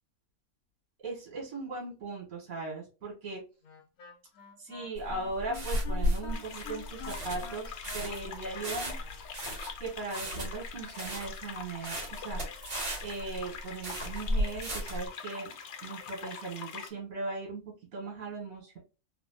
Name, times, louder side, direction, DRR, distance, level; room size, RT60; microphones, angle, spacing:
voice 1, 1.0-3.4 4.6-9.0 9.8-12.5 13.0-15.5 15.8-18.8, right 3 dB, 80° right, -2 dB, 1.6 m, -38 dB
Wind instrument woodwind instrument, 3.6-9.2, left 6 dB, 85° left, 1.1 m, -47 dB
sound 1, 5.0-15.1, equal, 55° right, 1.6 m, -34 dB
sound 2, 6.3-16.9, left 6 dB, 65° left, 0.7 m, -44 dB
3.4 x 2.0 x 2.6 m, 0.32 s
omnidirectional pair, 1.5 m